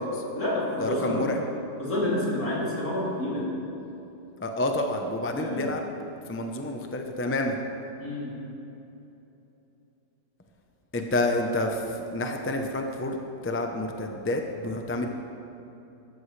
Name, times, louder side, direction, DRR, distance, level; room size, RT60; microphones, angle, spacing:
voice 1, 0.0-1.2 1.8-3.5 5.3-5.6 8.0-8.4, left 1 dB, 60° left, -6 dB, 3.5 m, -29 dB
voice 2, 0.8-1.4 4.4-5.8 6.3-7.6 10.9-13.2 13.4-15.1, left 1 dB, 20° left, 3 dB, 0.3 m, -28 dB
14.0 x 13.0 x 3.3 m, 3.0 s
omnidirectional pair, 1.7 m